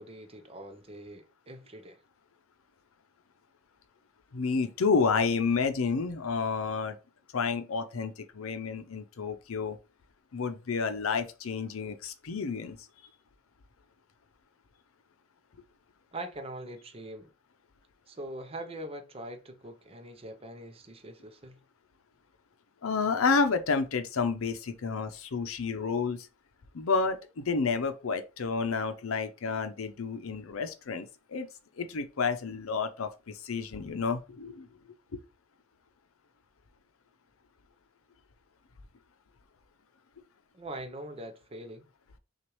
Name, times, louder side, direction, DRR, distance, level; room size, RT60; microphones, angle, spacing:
voice 1, 0.0-2.0 16.1-17.3 18.1-21.6 40.5-41.9, right 1 dB, 30° right, 0.7 m, -43 dB
voice 2, 4.3-7.0 7.3-9.8 10.3-12.9 22.8-26.3 26.7-31.5 31.8-34.7, left 5 dB, 80° left, 0.6 m, -30 dB
6.0 x 2.4 x 3.1 m
head